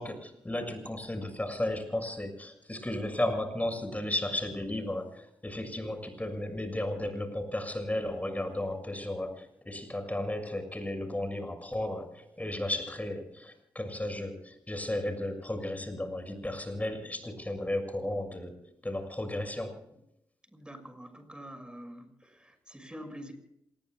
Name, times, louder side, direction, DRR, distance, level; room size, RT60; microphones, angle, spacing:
voice 1, 0.0-18.5 18.8-19.8, left 1 dB, 20° left, 7 dB, 6.5 m, -34 dB
voice 2, 20.5-23.3, equal, 10° right, 7 dB, 6.2 m, -46 dB
27.5 x 21.0 x 2.4 m, 0.76 s
supercardioid pair, 45°, 8 cm